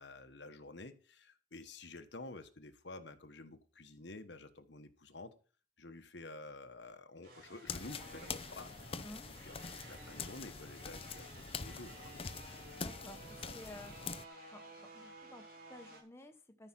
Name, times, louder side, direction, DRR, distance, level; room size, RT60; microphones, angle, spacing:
voice 1, 0.0-5.3 5.8-9.0 9.4-9.6 9.8-12.2, left 2 dB, 65° left, 9 dB, 1.3 m, -50 dB
sound 1, 7.2-16.0, right 2 dB, 50° right, 4.2 m, -54 dB
sound 2, 7.7-14.2, left 5 dB, 30° left, 0.7 m, -45 dB
voice 2, 9.0-9.3 12.8-14.0 14.5-16.7, left 1 dB, 15° left, 5 dB, 1.1 m, -53 dB
13.5 x 5.9 x 5.8 m, 0.37 s
head